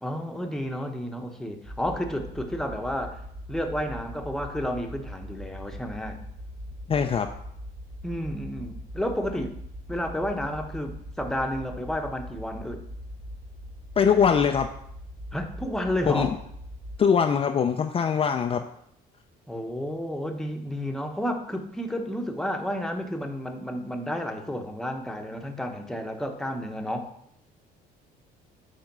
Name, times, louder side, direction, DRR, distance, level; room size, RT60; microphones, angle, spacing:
voice 1, 0.0-3.2 3.5-6.2 8.0-9.5 9.9-12.8 15.3-16.3 19.5-27.1, equal, 5° left, 4 dB, 1.0 m, -31 dB
sound 1, 1.7-17.0, equal, 25° right, 0.9 m, -41 dB
voice 2, 6.9-7.3 14.0-14.7 16.1-16.3 17.0-18.6, left 7 dB, 35° left, 5 dB, 0.5 m, -22 dB
9.0 x 3.5 x 5.4 m, 0.71 s
cardioid pair, 110°, 17 cm